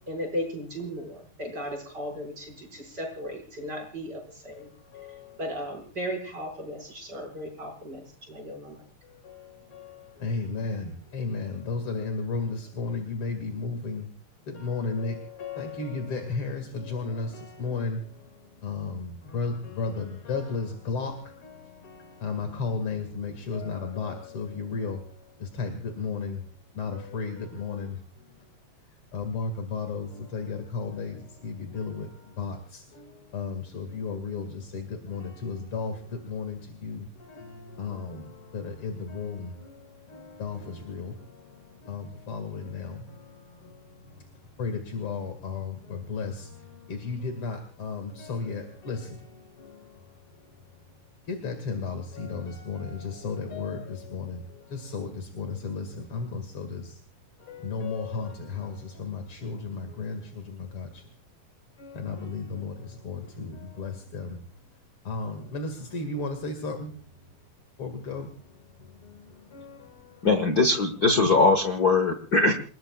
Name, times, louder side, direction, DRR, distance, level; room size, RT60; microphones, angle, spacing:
voice 1, 0.1-4.7 5.4-8.8, equal, 25° right, 1 dB, 6.1 m, -36 dB
voice 2, 4.9-5.4 9.0-14.1 14.5-26.4 26.7-28.0 29.1-44.2 44.6-50.1 51.3-57.0 57.4-61.0 61.8-64.4 65.0-67.0 67.8-70.3, left 4 dB, 45° left, 5 dB, 2.6 m, -34 dB
voice 3, 70.2-72.5, left 3 dB, 85° left, 6 dB, 0.8 m, -21 dB
29.0 x 20.5 x 2.4 m, 0.41 s
omnidirectional pair, 4.2 m